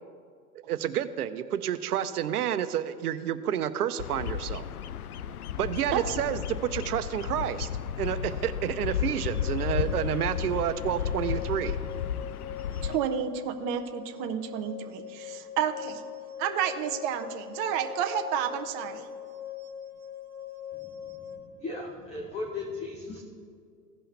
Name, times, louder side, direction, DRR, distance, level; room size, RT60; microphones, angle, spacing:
voice 1, 0.7-4.7 5.6-7.7 8.0-11.8, right 10 dB, 65° right, 11 dB, 0.8 m, -30 dB
Bird vocalization bird call bird song, 4.0-13.0, left 9 dB, 65° left, 0.6 m, -33 dB
sound 1, 9.3-21.4, left 10 dB, 5° right, 1.8 m, -42 dB
voice 2, 12.8-16.0 16.4-19.1, right 9 dB, 20° right, 6 dB, 0.5 m, -30 dB
voice 3, 21.6-23.2, left 3 dB, 15° left, 1 dB, 0.8 m, -36 dB
16.5 x 5.5 x 3.3 m, 2.2 s
hypercardioid pair, 120°, 48 cm